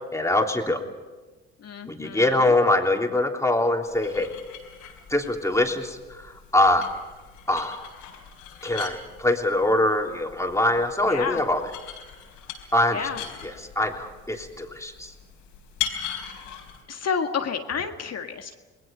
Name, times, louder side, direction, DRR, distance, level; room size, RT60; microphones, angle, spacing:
voice 1, 0.1-0.8 1.9-4.3 5.1-6.0 6.2-6.9 7.5-7.8 8.6-11.6 12.7-13.1 13.4-15.1, left 1 dB, 10° left, 2 dB, 3.3 m, -23 dB
voice 2, 1.6-2.5 4.8-4.9 11.0-11.4 12.9-13.2 16.9-18.5, left 6 dB, 50° left, 5 dB, 1.9 m, -30 dB
sound 1, 3.8-16.8, left 9 dB, 75° left, 4.1 m, -40 dB
30.0 x 20.5 x 5.4 m, 1.2 s
hypercardioid pair, 50°, 33 cm